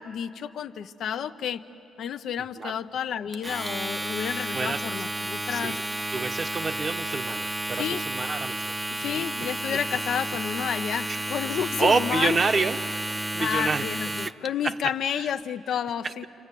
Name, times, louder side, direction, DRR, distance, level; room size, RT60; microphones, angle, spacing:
voice 1, 0.0-1.6 2.0-5.8 7.8-8.0 8.9-12.4 13.4-16.3, left 8 dB, 70° left, 9 dB, 0.7 m, -30 dB
Domestic sounds home sounds, 3.3-14.5, right 1 dB, 15° right, 0.7 m, -32 dB
voice 2, 5.2-5.8 6.1-8.6 9.0-9.3 9.7-9.8 11.1-11.2 11.6-13.9 14.6-14.8 15.2-15.3 16.0-16.1, right 4 dB, 40° right, 8 dB, 1.0 m, -28 dB
28.0 x 25.0 x 8.4 m, 2.9 s
cardioid pair, 90°, 0 cm